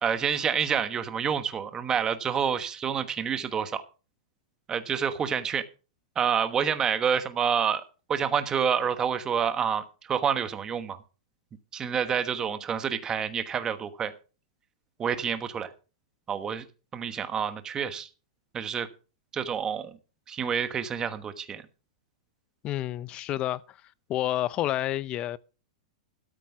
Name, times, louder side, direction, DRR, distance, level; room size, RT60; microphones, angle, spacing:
voice 1, 0.0-3.8 4.7-5.7 6.1-7.8 8.1-11.0 11.7-14.1 15.0-15.7 16.3-16.6 16.9-18.1 18.5-18.9 19.3-20.0 20.3-21.7, right 7 dB, 20° right, 1.2 m, -28 dB
voice 2, 22.6-23.8 24.1-25.4, left 13 dB, 30° left, 0.6 m, -29 dB
13.5 x 7.4 x 6.0 m
hypercardioid pair, 145°, 4 cm